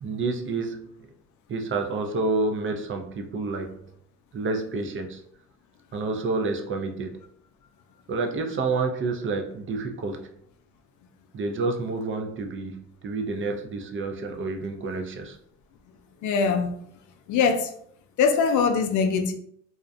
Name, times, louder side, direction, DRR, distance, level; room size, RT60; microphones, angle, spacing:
voice 1, 0.0-1.1 1.5-3.8 4.3-5.2 5.9-7.2 8.1-10.3 11.3-15.4, right 3 dB, 40° right, 4 dB, 0.4 m, -29 dB
voice 2, 16.2-16.7 17.3-17.7 18.2-19.3, left 5 dB, 75° left, 6 dB, 0.4 m, -22 dB
2.4 x 2.1 x 2.6 m, 0.69 s
cardioid pair, 90°, 30 cm